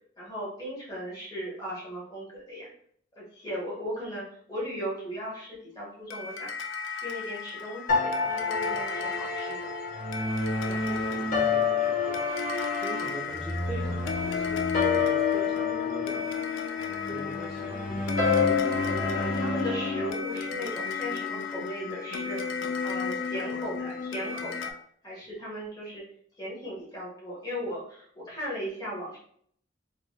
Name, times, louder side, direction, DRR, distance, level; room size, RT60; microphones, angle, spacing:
voice 1, 0.2-2.7 3.2-6.5 6.9-9.7 19.1-22.4 22.8-24.7 25.0-26.0 26.4-29.2, equal, 20° left, -5 dB, 1.1 m, -37 dB
sound 1, 6.1-24.7, left 6 dB, 90° left, 0.3 m, -34 dB
sound 2, 7.9-20.1, left 4 dB, 45° left, 0.7 m, -29 dB
voice 2, 10.7-12.3 12.8-16.3 17.0-18.4, right 1 dB, 5° right, -3 dB, 0.3 m, -42 dB
3.0 x 2.9 x 2.3 m, 0.62 s
head